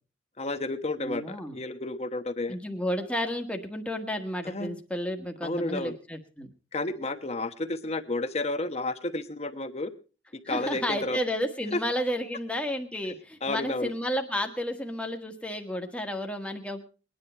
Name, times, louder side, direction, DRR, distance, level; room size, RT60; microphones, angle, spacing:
voice 1, 0.4-2.6 4.4-4.7 5.4-6.0 6.7-9.9 10.3-11.2 11.7-11.8 13.4-13.9, left 2 dB, 35° left, 10 dB, 1.0 m, -31 dB
voice 2, 1.0-1.6 2.5-6.5 10.4-16.8, equal, 5° left, 4 dB, 1.5 m, -32 dB
21.0 x 10.5 x 4.3 m, 0.36 s
head